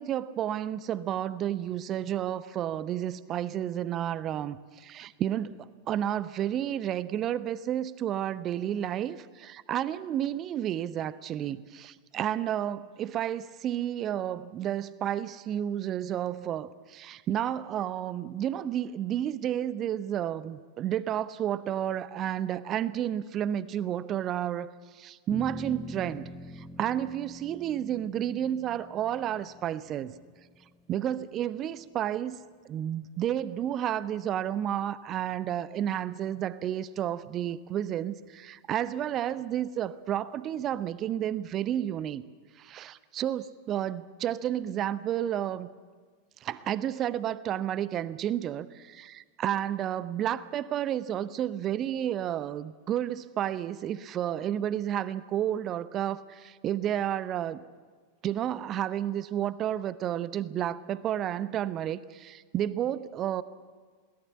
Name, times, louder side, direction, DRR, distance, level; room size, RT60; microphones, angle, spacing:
voice 1, 0.0-26.3 26.5-30.1 30.9-42.2 42.6-45.7 46.4-57.6 58.2-63.4, right 11 dB, 30° right, 17 dB, 0.7 m, -31 dB
sound 1, 25.3-31.9, equal, ahead, 0.9 m, -45 dB
22.0 x 18.0 x 8.6 m, 1.6 s
figure-of-eight pair, 90°, 0 cm